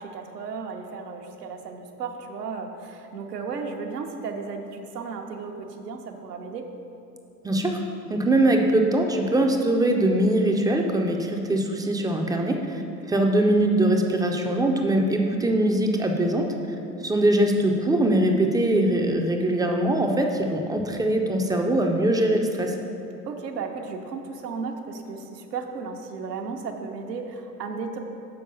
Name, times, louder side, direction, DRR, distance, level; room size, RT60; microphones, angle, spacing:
voice 1, 0.0-6.7 13.0-13.2 16.8-17.1 23.2-28.0, right 5 dB, 80° right, 3 dB, 0.8 m, -35 dB
voice 2, 7.4-7.8 8.1-12.8 13.1-16.5 17.0-22.7, right 1 dB, 10° right, 2 dB, 0.3 m, -22 dB
6.8 x 4.7 x 5.4 m, 2.7 s
figure-of-eight pair, 75°, 47 cm